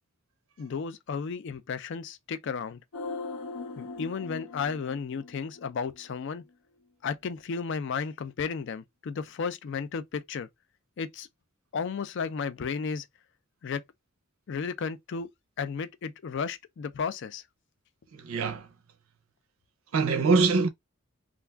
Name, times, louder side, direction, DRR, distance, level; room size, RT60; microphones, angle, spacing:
voice 1, 0.6-2.8 3.8-6.4 7.0-10.5 11.0-11.3 11.7-13.1 13.6-13.8 14.5-15.3 15.6-17.4, left 5 dB, 55° left, 0.3 m, -33 dB
sound 1, 2.9-6.2 6.5-6.6, left 3 dB, 75° left, 0.8 m, -40 dB
voice 2, 18.1-18.7 19.9-20.7, right 4 dB, 70° right, 0.5 m, -24 dB
2.4 x 2.3 x 3.3 m
head